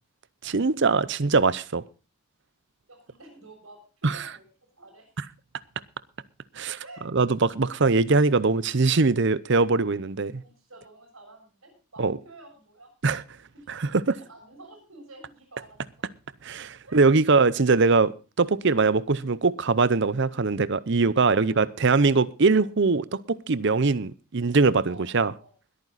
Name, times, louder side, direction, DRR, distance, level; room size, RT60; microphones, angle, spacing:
voice 1, 0.4-1.8 4.0-4.2 6.6-6.8 7.1-10.4 12.0-12.2 13.0-13.2 13.8-14.2 16.4-18.1 18.4-25.3, right 4 dB, 55° right, 0.7 m, -22 dB
voice 2, 2.9-4.5 4.8-5.1 6.8-7.1 10.3-13.2 13.5-13.7 14.1-15.8 16.8-17.0 20.3-20.5 21.2-21.6 21.9-22.1 24.9-25.5, right 2 dB, 75° right, 7.1 m, -49 dB
21.0 x 9.3 x 4.0 m
head